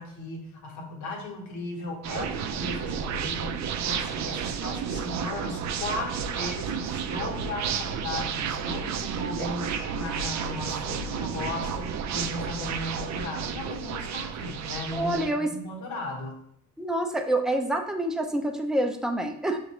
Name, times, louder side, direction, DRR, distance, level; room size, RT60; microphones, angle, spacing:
voice 1, 0.0-16.4, left 2 dB, 75° left, 0 dB, 1.2 m, -36 dB
sound 1, 2.0-15.3, right 7 dB, 65° right, 0.4 m, -31 dB
voice 2, 14.9-15.5 16.8-19.6, right 1 dB, ahead, 3 dB, 0.5 m, -27 dB
6.1 x 2.6 x 3.0 m, 0.71 s
cardioid pair, 90°, 30 cm